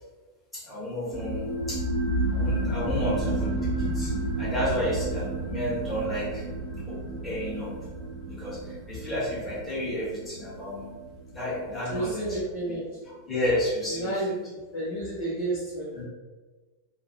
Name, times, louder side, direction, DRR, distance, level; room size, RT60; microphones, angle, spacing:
voice 1, 0.5-1.8 2.3-3.5 3.9-4.1 4.4-6.4 6.9-7.0 7.2-7.7 8.3-10.9 11.3-12.4 12.7-12.8 13.0-14.4 15.9-16.0, equal, 15° left, -8 dB, 1.2 m, -31 dB
sound 1, 1.1-12.3, right 2 dB, 10° right, 0.7 m, -31 dB
voice 2, 11.9-12.8 13.9-14.3 14.7-15.9, right 2 dB, 40° left, -7 dB, 0.7 m, -30 dB
2.3 x 2.3 x 2.7 m, 1.3 s
figure-of-eight pair, 90°, 0 cm